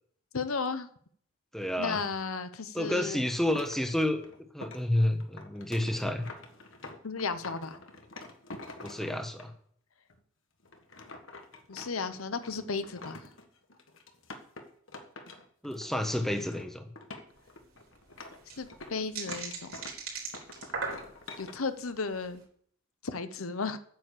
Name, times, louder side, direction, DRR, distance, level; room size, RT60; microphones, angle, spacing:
voice 1, 0.3-0.9 1.8-3.2 7.0-7.8 11.7-13.2 18.6-19.8 21.4-22.4 23.0-23.8, left 4 dB, 90° left, 11 dB, 0.9 m, -34 dB
voice 2, 1.5-2.0 2.7-4.2 4.5-6.3 8.8-9.5 15.6-16.9, left 1 dB, ahead, 5 dB, 1.2 m, -30 dB
sound 1, 3.4-9.4 10.1-10.2 10.6-16.1 16.4-16.7 17.0-20.0 20.3-21.5, left 2 dB, 65° left, 1.6 m, -47 dB
sound 2, 17.4-17.5 17.6-17.7 18.2-21.4 22.0-22.3, right 4 dB, 85° right, 4.0 m, -38 dB
9.2 x 7.5 x 8.3 m, 0.63 s
head